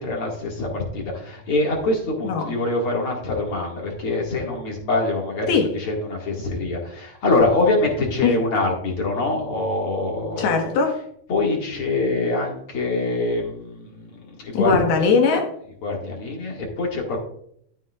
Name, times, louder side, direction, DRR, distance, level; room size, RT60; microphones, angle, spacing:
voice 1, 0.0-10.7 11.3-14.7 15.8-17.2, left 2 dB, 45° left, -1 dB, 2.2 m, -24 dB
voice 2, 10.4-11.0 14.5-15.5, left 5 dB, 75° left, 3 dB, 3.2 m, -20 dB
12.5 x 9.8 x 2.4 m, 0.68 s
omnidirectional pair, 4.5 m